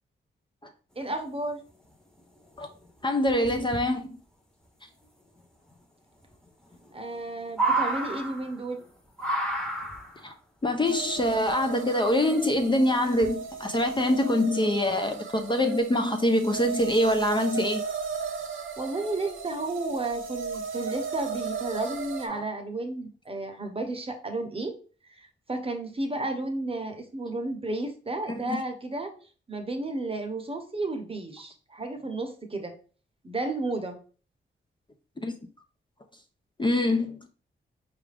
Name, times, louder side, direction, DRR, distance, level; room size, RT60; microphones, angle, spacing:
voice 1, 1.0-1.6 6.9-8.8 18.8-24.7 25.1-29.1 29.5-32.8 33.2-34.0, right 2 dB, 30° right, 0.8 m, -32 dB
sound 1, 2.2-2.3 2.5-2.9 3.3-3.8 5.4-5.5 5.7-5.8 6.3-6.4 6.7-8.9 9.2-10.3 11.2-11.9 12.6-12.7 13.1-13.5 14.0-14.2, right 2 dB, 5° left, 0.9 m, -30 dB
voice 2, 3.0-4.2 10.2-10.3 10.6-17.8 22.3-22.4 28.3-28.6 35.2-35.3 36.6-37.3, left 1 dB, 25° left, 0.5 m, -25 dB
sound 2, 10.8-22.3, right 5 dB, 80° right, 0.7 m, -36 dB
4.7 x 2.5 x 3.3 m
cardioid pair, 65°, 20 cm